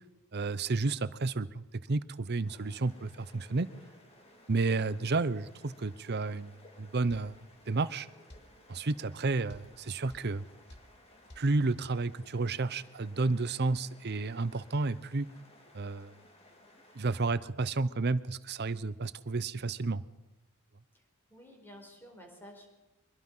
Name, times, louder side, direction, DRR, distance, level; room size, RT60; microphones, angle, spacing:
voice 1, 0.3-3.7 4.5-8.1 8.7-10.4 11.4-15.3 15.7-16.1 17.0-20.0, right 3 dB, 50° right, 15 dB, 0.8 m, -31 dB
sound 1, 2.4-17.3, left 1 dB, 30° left, 3.4 m, -59 dB
sound 2, 7.1-7.3 8.3-8.5 9.5-9.7 10.1-10.3 10.7-10.9 11.3-11.5, left 1 dB, 50° left, 2.8 m, -51 dB
voice 2, 21.3-22.7, equal, 10° left, 2 dB, 4.6 m, -51 dB
23.5 x 21.5 x 5.7 m, 1.1 s
head